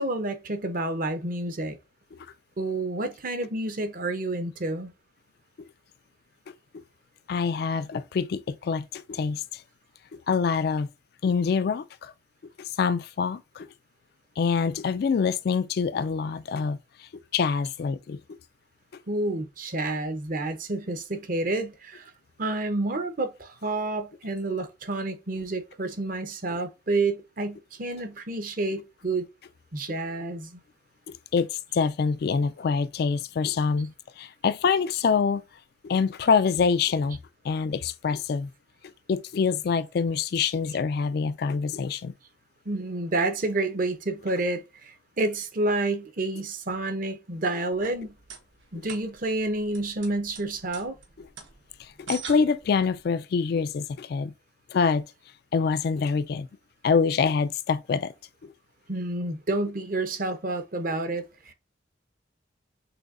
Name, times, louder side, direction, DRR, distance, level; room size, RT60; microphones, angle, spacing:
voice 1, 0.0-1.8 2.6-4.9 19.1-22.1 22.4-29.2 29.7-30.6 42.7-48.1 48.7-51.0 58.9-61.5, right 2 dB, 45° right, 0.7 m, -29 dB
voice 2, 7.3-9.4 10.3-10.9 11.2-12.1 12.8-13.7 14.4-16.8 17.3-18.2 31.3-33.9 34.2-35.4 35.8-37.2 37.5-38.5 39.1-42.1 52.1-54.3 54.7-55.0 55.5-56.5 56.8-58.1, left 5 dB, 55° left, 0.3 m, -25 dB
sound 1, 47.6-53.0, right 6 dB, 75° right, 1.2 m, -45 dB
6.1 x 2.7 x 2.4 m
head